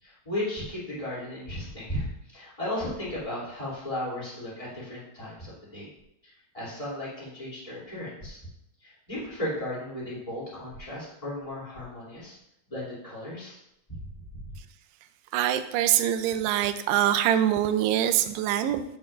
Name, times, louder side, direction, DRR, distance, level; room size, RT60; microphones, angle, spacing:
voice 1, 0.0-5.9 6.2-8.4 8.8-12.4 12.7-13.6 13.9-14.0, left 1 dB, 10° left, -8 dB, 2.1 m, -35 dB
voice 2, 15.3-18.8, right 11 dB, 90° right, 10 dB, 2.6 m, -24 dB
8.6 x 7.2 x 2.4 m, 0.81 s
omnidirectional pair, 4.6 m